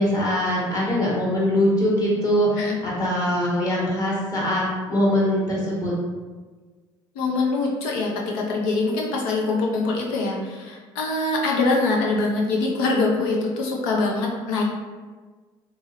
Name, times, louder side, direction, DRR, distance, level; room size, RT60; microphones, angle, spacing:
voice 1, 0.0-5.9, equal, 30° left, -5 dB, 1.2 m, -22 dB
voice 2, 7.1-14.6, left 3 dB, 90° left, -1 dB, 0.6 m, -24 dB
2.9 x 2.7 x 2.5 m, 1.4 s
supercardioid pair, 85°, 11 cm